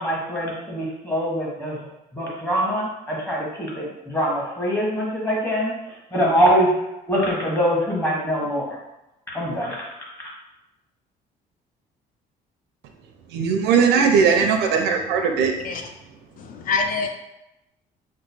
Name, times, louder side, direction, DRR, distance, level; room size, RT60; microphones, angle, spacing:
voice 1, 0.0-1.8 2.1-5.7 6.1-6.7 7.1-8.7 9.3-9.7, equal, 15° left, -4 dB, 1.1 m, -23 dB
voice 2, 13.3-15.5, right 6 dB, 85° right, 4 dB, 0.5 m, -19 dB
voice 3, 16.4-17.1, left 4 dB, 55° left, 4 dB, 0.4 m, -25 dB
3.0 x 2.0 x 4.1 m, 0.91 s
cardioid pair, 110°, 17 cm